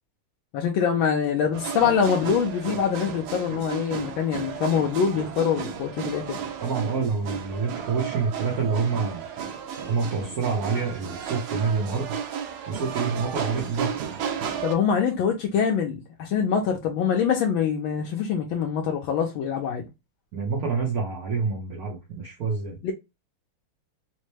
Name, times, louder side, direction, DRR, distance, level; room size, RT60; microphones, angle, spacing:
voice 1, 0.5-6.4 14.6-19.9 22.8-22.9, left 7 dB, 75° left, 1.3 m, -24 dB
sound 1, 1.5-14.7, right 8 dB, 80° right, 1.5 m, -33 dB
voice 2, 6.6-9.3 9.9-12.2 12.7-13.9 20.3-22.8, right 5 dB, 60° right, 1.1 m, -27 dB
4.1 x 2.1 x 3.1 m
omnidirectional pair, 2.3 m